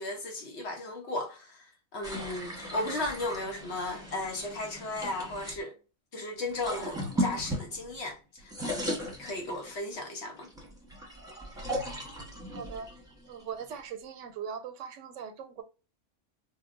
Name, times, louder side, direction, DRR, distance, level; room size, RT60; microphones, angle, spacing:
voice 1, 0.0-1.6 1.9-5.7 6.1-10.5, left 2 dB, 65° left, 1.0 m, -35 dB
sound 1, 2.0-5.6 6.4-8.1 8.4-9.9 10.4-13.8, equal, 5° right, 0.8 m, -37 dB
voice 2, 12.5-12.9 13.3-15.6, right 7 dB, 85° right, 0.9 m, -40 dB
4.6 x 2.1 x 2.5 m
omnidirectional pair, 1.2 m